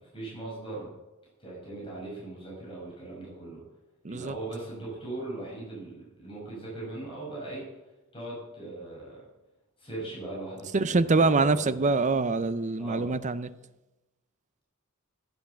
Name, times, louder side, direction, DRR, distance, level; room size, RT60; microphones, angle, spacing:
voice 1, 0.1-0.9 1.4-3.6 4.1-7.7 8.1-9.2 9.8-11.9 12.8-13.1, right 2 dB, 25° left, 6.1 m, -39 dB
voice 2, 10.7-13.5, right 3 dB, 35° right, 0.5 m, -24 dB
15.0 x 8.1 x 6.9 m
head